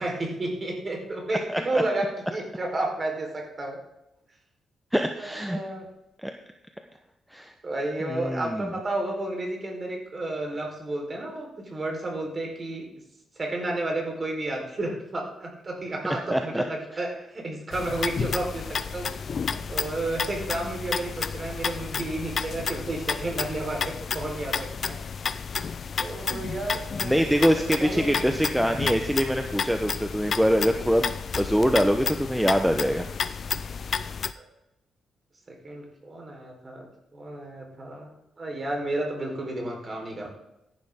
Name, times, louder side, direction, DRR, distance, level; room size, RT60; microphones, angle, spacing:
voice 1, 0.0-3.8 5.2-5.9 7.6-12.9 13.4-19.1 19.5-25.0 26.0-27.3 27.5-28.2 28.5-28.8 34.4-34.5 35.5-36.9 37.1-40.3, right 2 dB, 30° right, 1 dB, 4.1 m, -32 dB
voice 2, 4.9-5.6 6.2-6.3 7.3-7.5 8.0-8.7 16.3-16.6 26.3-26.4 27.0-31.1 31.4-33.1, equal, ahead, 4 dB, 0.9 m, -24 dB
sound 1, 17.7-34.3, left 6 dB, 45° left, 0.6 m, -31 dB
14.0 x 11.0 x 3.7 m, 0.87 s
cardioid pair, 110°, 0 cm